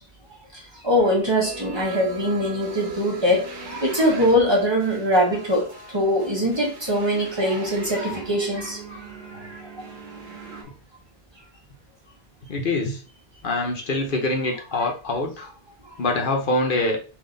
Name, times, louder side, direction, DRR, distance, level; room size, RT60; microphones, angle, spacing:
voice 1, 0.5-9.7 14.7-14.9, equal, 25° right, 1.1 m, -23 dB
sound 1, 1.4-10.6, right 3 dB, 55° right, 1.0 m, -40 dB
voice 2, 12.5-13.0 13.4-15.5 16.0-17.0, left 2 dB, 60° left, 0.9 m, -24 dB
3.8 x 2.7 x 3.8 m
omnidirectional pair, 1.0 m